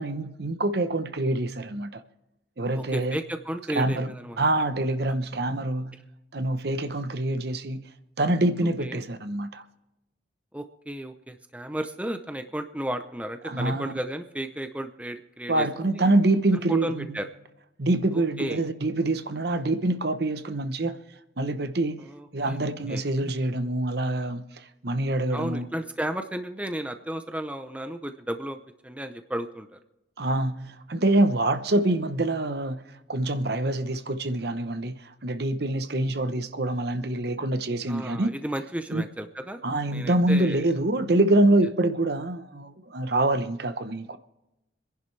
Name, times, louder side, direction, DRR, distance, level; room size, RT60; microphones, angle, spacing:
voice 1, 0.0-2.0 2.6-3.2 3.8-4.1 4.4-5.9 6.3-7.9 8.2-9.6 13.4-13.9 15.5-17.2 17.8-21.0 21.4-25.7 30.2-32.8 33.1-38.3 38.9-39.0 39.6-44.2, right 2 dB, 55° right, 0.9 m, -25 dB
voice 2, 2.7-4.4 8.8-9.0 10.5-15.7 15.9-16.0 16.5-17.3 18.1-18.6 22.0-22.6 22.9-23.0 25.3-29.8 37.9-39.6 39.9-40.7, right 1 dB, 5° right, 0.6 m, -33 dB
26.5 x 11.0 x 3.3 m
head